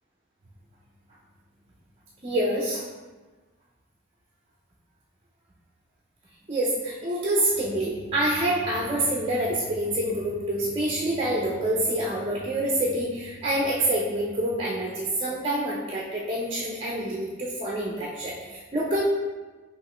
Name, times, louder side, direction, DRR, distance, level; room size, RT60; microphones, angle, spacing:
voice 1, 2.2-2.8 6.5-19.0, right 1 dB, 30° right, -4 dB, 0.6 m, -27 dB
5.3 x 3.0 x 3.0 m, 1.3 s
head